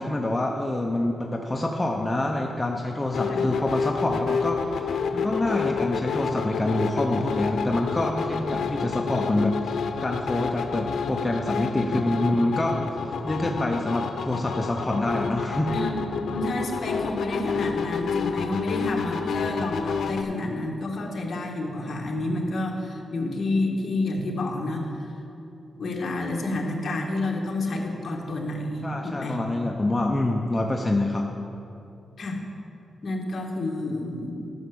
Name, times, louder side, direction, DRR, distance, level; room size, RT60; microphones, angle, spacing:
voice 1, 0.0-15.7 28.8-31.3, left 1 dB, 15° left, 1 dB, 0.6 m, -26 dB
sound 1, 3.1-20.2, left 6 dB, 80° left, 0.7 m, -29 dB
voice 2, 15.6-25.1 25.8-29.4 32.2-32.4 33.0-34.4, left 2 dB, 50° left, 0 dB, 1.4 m, -29 dB
11.5 x 5.9 x 7.0 m, 2.7 s
wide cardioid pair, 160°, 0 cm